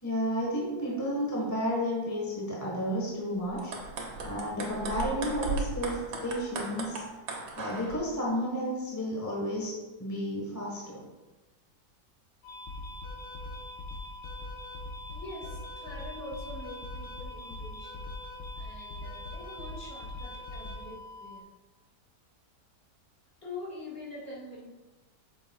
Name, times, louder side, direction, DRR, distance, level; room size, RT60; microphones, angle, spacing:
voice 1, 0.0-3.7 4.2-7.0 7.6-9.7 10.0-11.0, equal, 10° left, -3 dB, 1.1 m, -32 dB
sound 1, 3.5-8.0, right 3 dB, 85° right, 1.7 m, -36 dB
sound 2, 12.4-21.4, left 2 dB, 75° left, 1.6 m, -41 dB
voice 2, 15.1-18.0 18.6-21.4 23.4-24.7, left 2 dB, 35° left, -5 dB, 2.2 m, -44 dB
8.0 x 6.7 x 2.3 m, 1.1 s
omnidirectional pair, 1.8 m